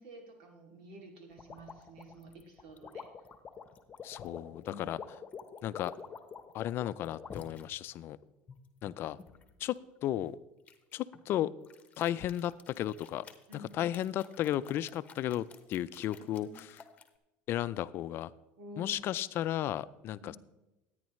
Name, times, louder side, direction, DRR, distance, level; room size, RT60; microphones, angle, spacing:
voice 1, 0.0-3.1 4.7-4.9 13.5-13.9 16.4-16.5 18.6-19.0 20.2-20.4, equal, 85° right, 3 dB, 2.6 m, -50 dB
sound 1, 1.4-7.6 8.2-9.5 10.7-11.2 11.6-17.1, left 6 dB, 25° left, 1.1 m, -48 dB
voice 2, 4.0-5.0 5.6-5.9 6.5-8.2 8.8-9.2 9.6-10.4 10.9-11.5 12.0-13.2 13.7-16.5 17.5-18.3 18.8-20.4, left 12 dB, 50° left, 16 dB, 0.4 m, -34 dB
14.0 x 9.6 x 3.2 m, 0.97 s
supercardioid pair, 115°, 5 cm